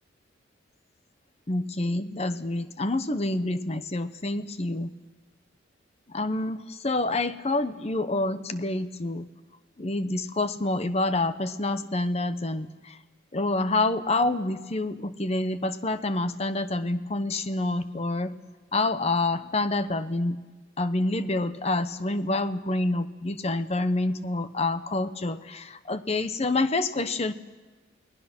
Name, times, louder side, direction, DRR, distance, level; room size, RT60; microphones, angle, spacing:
voice 1, 1.5-4.9 6.1-9.3 9.8-13.0 13.3-18.3 18.7-20.4 20.8-27.3, left 2 dB, 30° left, 12 dB, 0.9 m, -27 dB
29.0 x 19.5 x 6.0 m, 1.2 s
head